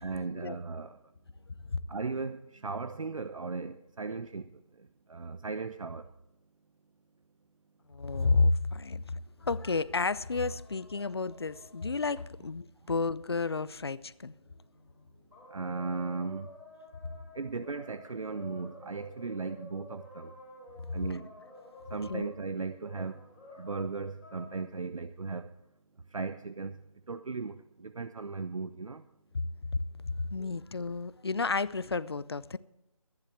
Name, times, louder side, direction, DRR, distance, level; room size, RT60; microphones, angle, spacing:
voice 1, 0.0-1.0 1.9-4.5 5.1-6.1 15.5-16.5 17.3-20.3 20.9-21.3 21.9-23.2 23.6-25.5 26.1-26.7 27.1-29.0 30.4-30.5, right 4 dB, 65° right, 0.7 m, -37 dB
voice 2, 7.9-9.0 9.4-14.3 22.1-22.3 30.3-32.6, left 3 dB, 45° left, 0.5 m, -31 dB
sound 1, 10.2-12.2 13.8-13.9 15.3-25.1, left 1 dB, 5° right, 3.6 m, -52 dB
23.0 x 10.5 x 3.3 m
figure-of-eight pair, 170°, 18 cm